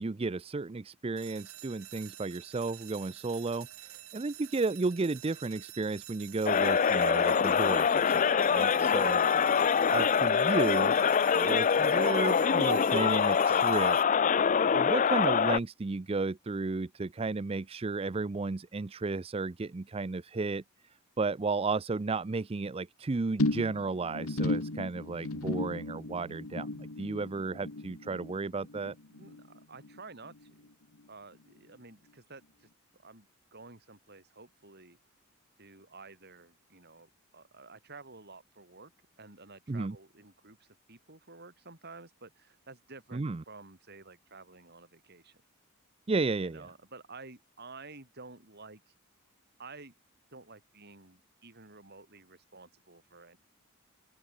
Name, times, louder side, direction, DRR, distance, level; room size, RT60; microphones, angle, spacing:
voice 1, 0.0-8.2 8.5-9.2 9.9-11.0 11.3-14.0 14.7-20.6 21.2-28.9 39.7-40.0 43.1-43.4 46.1-46.7, right 3 dB, 25° right, 0.5 m, -33 dB
sound 1, 1.2-14.0, right 14 dB, 80° right, 3.5 m, -49 dB
sound 2, 6.5-15.6, left 6 dB, 35° left, 0.4 m, -25 dB
voice 2, 8.9-9.3 29.1-30.5 31.1-32.7 33.0-35.0 35.6-38.9 39.2-45.4 46.4-48.9 49.6-49.9 50.3-53.4, right 3 dB, 50° right, 6.0 m, -51 dB
sound 3, 23.4-30.0 30.2-30.7 31.0-31.1, left 2 dB, 85° left, 1.8 m, -35 dB
open air
head